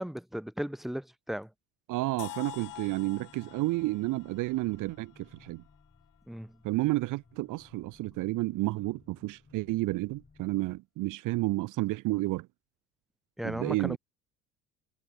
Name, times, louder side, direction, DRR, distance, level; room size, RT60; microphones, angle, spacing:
voice 1, 0.0-1.5 6.3-6.5 13.4-14.0, equal, ahead, 1.5 m, -36 dB
voice 2, 1.9-5.6 6.6-12.5 13.4-14.0, right 20 dB, 55° right, 0.8 m, -31 dB
sound 1, 2.2-6.1, left 14 dB, 55° left, 2.6 m, -47 dB
sound 2, 2.5-10.8, left 4 dB, 20° left, 4.1 m, -60 dB
hypercardioid pair, 65°, 37 cm